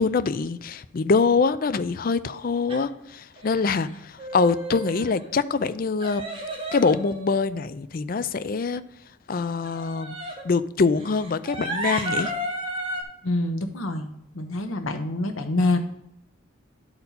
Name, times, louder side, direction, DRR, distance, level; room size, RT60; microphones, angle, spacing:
voice 1, 0.0-3.9 4.3-6.2 6.7-8.8 9.3-10.2 10.4-12.3, left 4 dB, 45° left, 14 dB, 0.4 m, -24 dB
sound 1, 2.7-2.8 3.4-3.9 4.2-5.3 6.0-7.7 9.6-10.5 11.0-13.0, right 1 dB, 25° right, 1.2 m, -33 dB
voice 2, 13.2-14.1 14.3-15.8, left 2 dB, 90° left, 6 dB, 1.1 m, -26 dB
11.5 x 4.4 x 4.1 m, 0.75 s
head